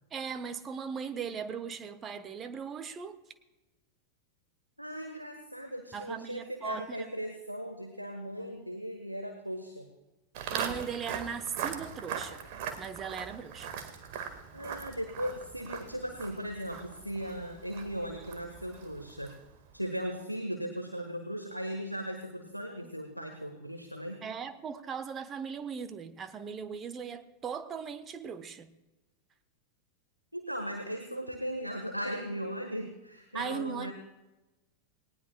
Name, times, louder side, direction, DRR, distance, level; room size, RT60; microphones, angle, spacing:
voice 1, 0.1-3.2 5.9-7.1 10.5-12.4 12.8-13.7 24.2-28.7 33.3-33.9, right 6 dB, 25° right, 10 dB, 0.9 m, -38 dB
voice 2, 4.8-9.9 14.5-19.3 19.7-24.2 30.3-33.9, equal, 90° right, 4 dB, 1.3 m, -37 dB
Walk footsteps, 10.3-19.6, right 7 dB, 45° right, 1.7 m, -40 dB
19.0 x 19.0 x 2.3 m, 1.1 s
figure-of-eight pair, 90°, 0 cm